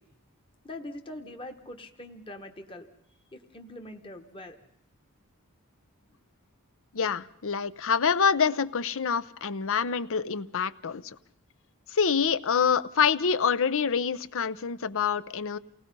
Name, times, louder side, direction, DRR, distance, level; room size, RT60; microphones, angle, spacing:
voice 1, 0.6-2.9 3.3-4.6, left 1 dB, 25° left, 1.3 m, -43 dB
voice 2, 6.9-11.0 11.9-15.6, left 6 dB, 65° left, 0.8 m, -26 dB
28.5 x 18.5 x 5.5 m
head